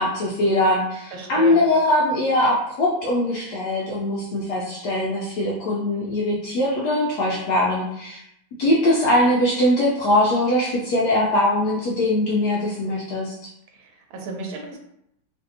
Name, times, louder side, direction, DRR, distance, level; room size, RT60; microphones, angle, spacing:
voice 1, 0.0-8.2 8.6-13.5, left 1 dB, 75° left, -4 dB, 0.9 m, -21 dB
voice 2, 1.1-1.6 13.8-14.8, right 3 dB, 85° right, 1 dB, 1.4 m, -34 dB
3.2 x 2.5 x 2.6 m, 0.78 s
omnidirectional pair, 2.2 m